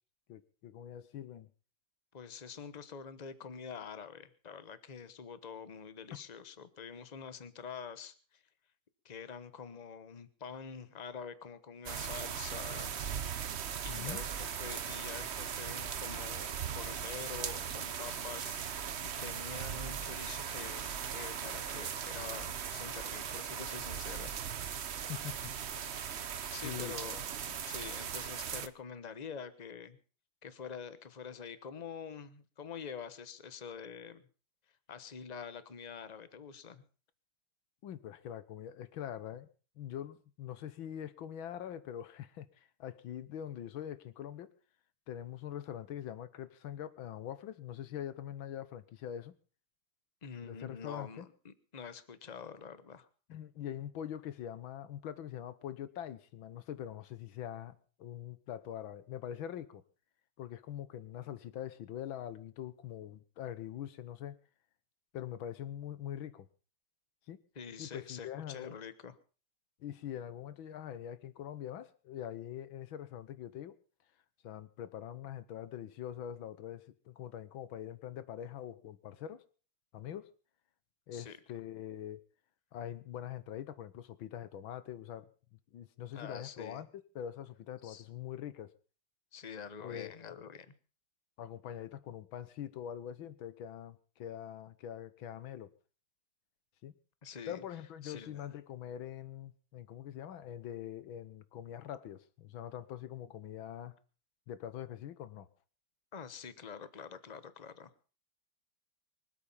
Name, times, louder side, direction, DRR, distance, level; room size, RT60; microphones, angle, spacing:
voice 1, 0.3-1.5 6.1-6.2 13.9-14.2 25.1-25.5 26.6-27.0 37.8-39.5 39.8-44.5 45.1-49.4 50.4-51.3 53.3-59.8 60.4-64.4 65.1-66.5 67.3-67.4 67.8-68.8 69.8-73.8 74.4-79.4 79.9-80.3 81.1-82.2 82.7-88.7 89.8-90.5 91.4-95.7 96.8-96.9 97.5-104.0 104.5-105.5, left 10 dB, 80° left, 14 dB, 1.9 m, -43 dB
voice 2, 2.1-8.4 9.0-13.0 13.6-24.3 24.6-25.0 26.5-30.0 30.4-34.2 34.9-36.8 50.2-53.1 67.5-69.2 81.1-81.4 86.1-86.8 87.8-88.0 89.3-90.7 97.2-97.6 98.0-98.4 106.1-108.1, left 6 dB, 25° left, 13 dB, 0.9 m, -46 dB
sound 1, 11.9-28.7, right 8 dB, 55° right, 0.7 m, -39 dB
24.5 x 8.6 x 5.6 m, 0.39 s
omnidirectional pair, 2.2 m